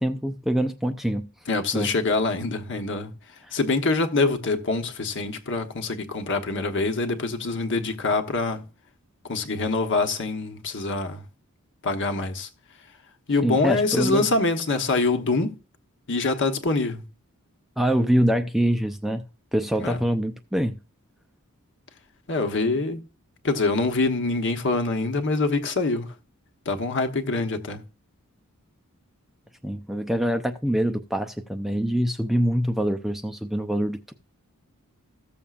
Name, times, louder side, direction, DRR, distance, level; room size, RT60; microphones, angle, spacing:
voice 1, 0.0-1.3 1.7-1.9 13.4-14.3 17.8-19.2 19.5-20.8 29.6-34.1, equal, ahead, 0.5 m, -24 dB
voice 2, 1.5-3.1 3.5-8.6 9.2-11.2 11.8-12.5 13.3-15.6 16.1-17.0 19.8-20.0 22.3-23.0 23.4-26.1 26.6-27.8, left 3 dB, 55° left, 1.1 m, -25 dB
15.0 x 7.0 x 2.4 m
head